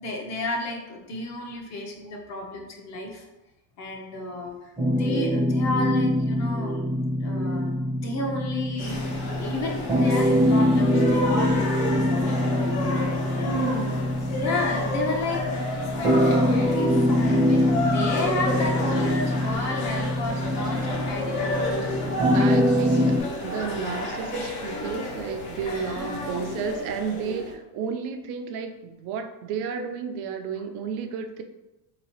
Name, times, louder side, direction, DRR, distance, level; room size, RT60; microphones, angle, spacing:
voice 1, 0.0-3.3 3.8-6.9 7.2-7.7 8.0-13.8 14.3-22.5 25.7-26.6, left 2 dB, 40° left, 1 dB, 0.7 m, -33 dB
sound 1, 4.8-23.2, equal, 10° right, 0.6 m, -24 dB
sound 2, 8.8-27.5, left 2 dB, 65° left, 1.0 m, -31 dB
voice 2, 13.4-14.0 22.3-31.4, right 6 dB, 65° right, 5 dB, 0.5 m, -32 dB
3.7 x 2.9 x 2.9 m, 0.98 s
cardioid pair, 165°, 43 cm